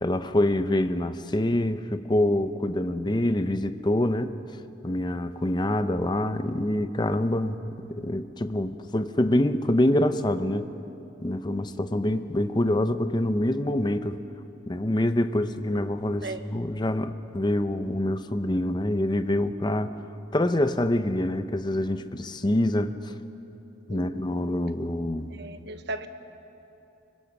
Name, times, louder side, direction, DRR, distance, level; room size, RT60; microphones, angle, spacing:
voice 1, 0.0-4.3 4.8-10.7 11.2-14.2 14.7-19.9 20.3-23.1 23.9-25.3, left 1 dB, 20° left, 10 dB, 0.7 m, -26 dB
voice 2, 23.9-24.2 25.3-26.1, right 2 dB, 55° right, 9 dB, 1.1 m, -36 dB
25.5 x 22.5 x 6.1 m, 2.9 s
head